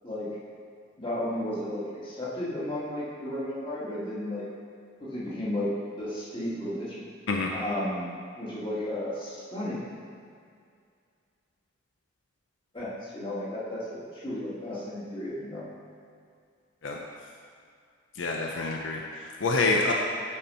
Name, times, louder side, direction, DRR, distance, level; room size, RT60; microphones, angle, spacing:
voice 1, 0.0-0.4 1.0-4.4 5.0-5.7 6.0-7.0 7.5-8.1 8.4-9.9 12.7-15.6, left 1 dB, 25° left, -8 dB, 1.9 m, -33 dB
voice 2, 18.1-19.9, left 3 dB, 75° left, 0 dB, 0.6 m, -27 dB
8.4 x 4.4 x 5.5 m, 2.3 s
head